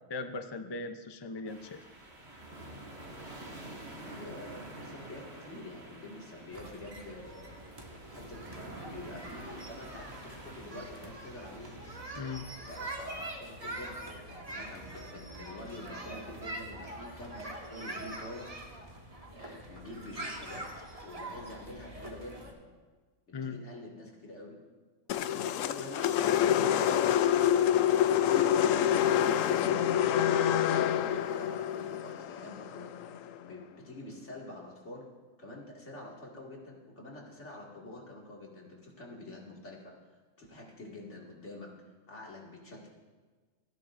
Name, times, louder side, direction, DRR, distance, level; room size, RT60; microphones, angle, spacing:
voice 1, 0.1-1.8 12.2-12.5 23.3-23.6, left 3 dB, 30° left, 8 dB, 0.4 m, -38 dB
sound 1, 1.5-12.0, right 1 dB, 55° right, 2.6 m, -48 dB
voice 2, 3.6-7.4 8.1-11.8 12.6-18.6 19.3-20.7 21.0-22.6 23.3-24.6 25.3-27.0 27.4-28.1 28.7-32.9 33.4-35.1 35.4-39.9 40.4-41.8 42.1-42.9, left 1 dB, 60° left, -2 dB, 2.5 m, -47 dB
sound 2, 6.5-22.5, right 1 dB, 30° right, 1.6 m, -44 dB
sound 3, 25.1-33.4, left 10 dB, 90° left, 1.0 m, -27 dB
29.0 x 10.5 x 2.6 m, 1.4 s
omnidirectional pair, 1.3 m